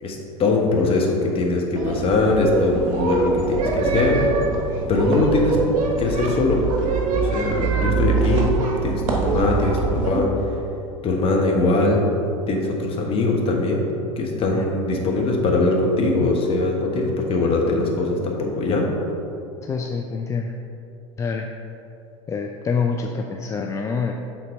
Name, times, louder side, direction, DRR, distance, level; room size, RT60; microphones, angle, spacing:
voice 1, 0.0-4.2 4.9-5.6 6.0-6.6 7.1-8.5 8.8-10.3 11.0-12.1 12.5-13.9 14.2-18.9, left 2 dB, 35° left, 0 dB, 1.3 m, -21 dB
sound 1, 1.7-10.2, right 4 dB, 45° right, 1.1 m, -24 dB
voice 2, 19.6-20.5 21.2-21.5 22.3-24.1, left 5 dB, 20° left, 3 dB, 0.3 m, -26 dB
6.8 x 4.0 x 5.3 m, 2.7 s
figure-of-eight pair, 80°, 17 cm